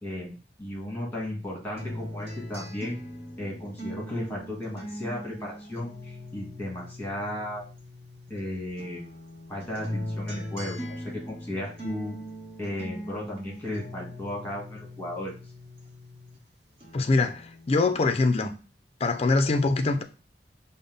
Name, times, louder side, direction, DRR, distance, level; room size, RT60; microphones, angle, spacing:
voice 1, 0.0-3.0 3.4-7.6 8.3-9.0 9.5-12.2 12.6-15.3, left 1 dB, 10° left, 1.6 m, -35 dB
sound 1, 1.8-8.4 8.8-16.4 16.8-17.8, equal, 35° right, 1.1 m, -40 dB
voice 2, 16.9-18.5 19.0-20.0, left 3 dB, 35° left, 0.4 m, -23 dB
5.3 x 2.0 x 3.8 m
head